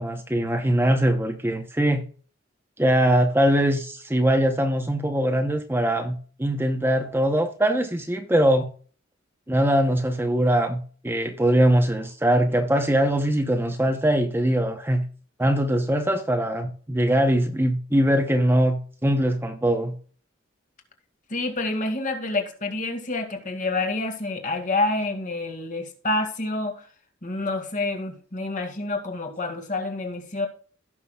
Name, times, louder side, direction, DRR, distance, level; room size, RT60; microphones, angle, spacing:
voice 1, 0.0-2.0 2.8-8.7 9.5-15.0 15.4-19.9, right 1 dB, 10° right, 0.8 m, -22 dB
voice 2, 21.3-26.8 27.2-30.5, left 2 dB, 40° left, 2.2 m, -28 dB
17.0 x 6.1 x 2.4 m
head